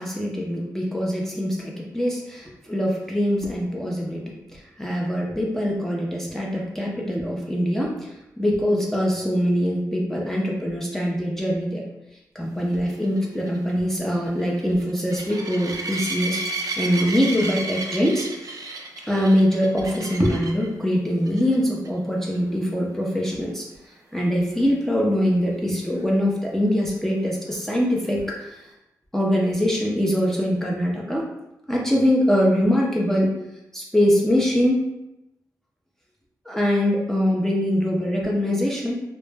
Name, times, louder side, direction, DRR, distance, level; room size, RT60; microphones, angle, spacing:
voice 1, 0.0-8.1 8.4-11.8 12.3-18.6 19.1-23.7 24.1-28.6 29.1-31.3 31.7-33.4 33.7-34.8 36.5-39.0, equal, 5° left, -4 dB, 0.4 m, -23 dB
sound 1, 12.7-20.7 21.3-21.6 21.9-22.0 22.3-22.4 26.0-26.1, right 3 dB, 55° right, 0.4 m, -32 dB
2.1 x 2.0 x 3.1 m, 0.90 s
cardioid pair, 75°, 7 cm